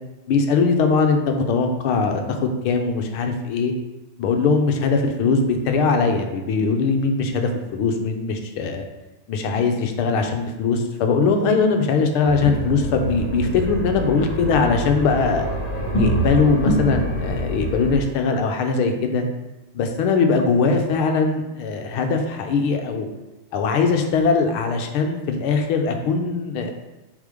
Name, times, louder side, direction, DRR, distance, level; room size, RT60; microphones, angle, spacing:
voice 1, 0.3-2.4 2.6-3.7 4.2-8.8 9.3-15.5 16.0-19.2 19.7-23.1 23.5-26.7, left 4 dB, 80° left, 5 dB, 1.6 m, -21 dB
sound 1, 12.3-18.0, right 1 dB, 20° left, 1.7 m, -25 dB
7.4 x 3.7 x 5.0 m, 1.1 s
omnidirectional pair, 2.4 m